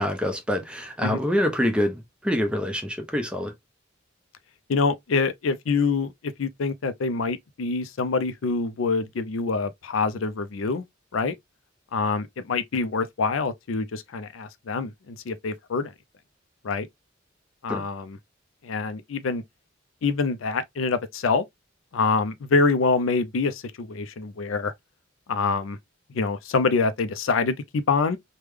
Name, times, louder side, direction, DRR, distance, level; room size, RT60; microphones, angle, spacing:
voice 1, 0.0-3.5 17.7-17.8, left 1 dB, 5° right, 0.7 m, -26 dB
voice 2, 4.7-10.8 11.1-11.3 11.9-15.9 16.6-16.9 17.6-18.2 18.6-19.4 20.0-21.4 21.9-24.7 25.3-25.8 26.1-28.2, left 4 dB, 80° left, 0.5 m, -25 dB
3.5 x 2.2 x 3.2 m
head